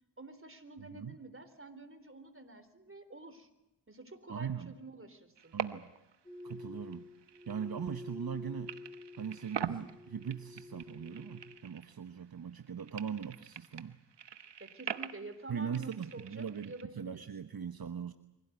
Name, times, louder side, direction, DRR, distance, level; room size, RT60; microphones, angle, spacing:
voice 1, 0.2-3.5 3.9-5.6 14.6-17.2, right 2 dB, 30° right, 10 dB, 3.8 m, -49 dB
voice 2, 4.3-4.7 5.5-5.9 6.4-7.1 7.5-8.8 9.2-14.0 15.5-18.1, right 7 dB, 55° right, 9 dB, 1.2 m, -40 dB
sound 1, 5.4-6.2 6.4-8.4 8.7-12.2 12.5-16.8, right 8 dB, 80° right, 1.2 m, -44 dB
sound 2, 6.3-11.6, left 3 dB, 10° left, 4.0 m, -49 dB
24.5 x 17.0 x 9.4 m, 0.93 s
cardioid pair, 45°, 42 cm